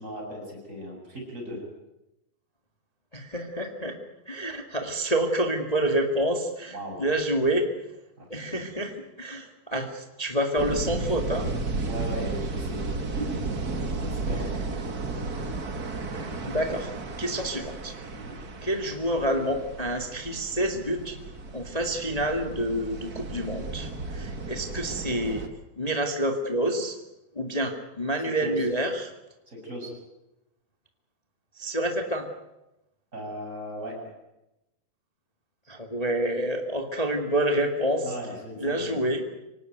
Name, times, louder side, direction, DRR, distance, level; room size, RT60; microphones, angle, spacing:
voice 1, 0.0-1.6 6.7-7.1 8.2-8.6 11.8-12.9 13.2-13.4 13.9-14.5 18.1-18.4 28.4-28.6 29.5-29.9 33.1-34.0 38.0-39.0, equal, 20° right, 0 dB, 7.6 m, -37 dB
voice 2, 3.1-4.0 4.2-7.7 8.3-11.5 14.7-14.8 16.1-16.9 17.2-17.9 18.6-21.2 21.5-25.5 25.8-27.0 27.3-29.1 31.6-32.3 35.7-38.1 38.6-39.2, right 1 dB, 20° left, 4 dB, 1.1 m, -28 dB
sound 1, 10.6-25.5, right 3 dB, 40° right, 1.3 m, -34 dB
25.5 x 18.5 x 9.3 m, 0.93 s
omnidirectional pair, 4.5 m